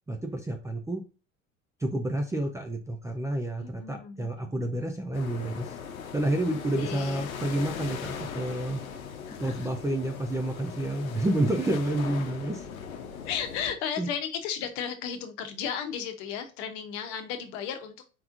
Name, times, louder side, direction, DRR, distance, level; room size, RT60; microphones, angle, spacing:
voice 1, 0.1-1.0 1.8-5.8 6.1-8.8 9.4-12.6 14.0-14.1, right 1 dB, 5° right, 0.5 m, -29 dB
voice 2, 3.6-4.6 6.4-7.3 9.3-9.7 13.2-18.1, left 8 dB, 50° left, 1.0 m, -35 dB
sound 1, 5.1-13.7, left 7 dB, 75° left, 0.8 m, -39 dB
4.7 x 3.5 x 2.5 m
figure-of-eight pair, 70°, 42 cm